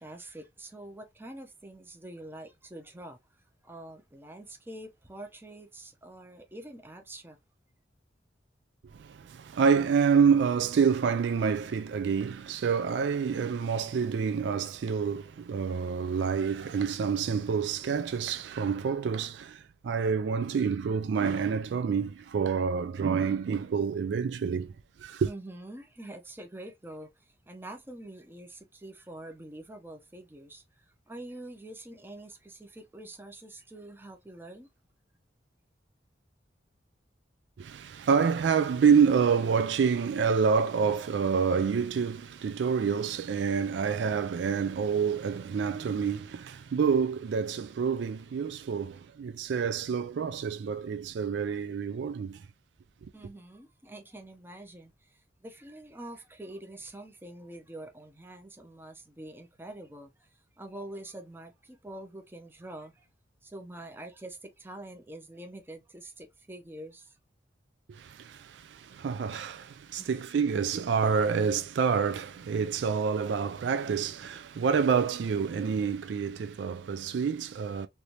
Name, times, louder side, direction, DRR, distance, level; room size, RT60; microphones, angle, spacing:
voice 1, 0.0-3.2 3.6-7.4 25.3-34.7 53.1-63.1 63.4-67.2 70.0-70.1, right 1 dB, 10° right, 0.6 m, -45 dB
voice 2, 8.9-24.7 25.0-25.3 37.6-52.5 67.9-77.9, right 6 dB, 70° right, 0.3 m, -27 dB
3.3 x 2.6 x 2.8 m
head